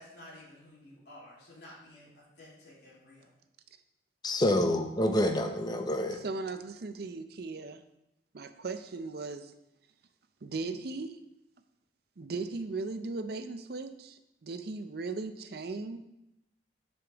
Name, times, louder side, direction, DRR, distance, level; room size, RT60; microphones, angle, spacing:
voice 1, 0.0-3.3, left 1 dB, 65° left, -7 dB, 3.0 m, -52 dB
voice 2, 4.2-6.2, left 1 dB, 20° left, 5 dB, 0.6 m, -27 dB
voice 3, 6.1-7.8 8.3-9.5 10.4-11.2 12.2-16.0, right 3 dB, 55° right, 10 dB, 0.5 m, -37 dB
6.9 x 6.8 x 3.5 m, 0.88 s
head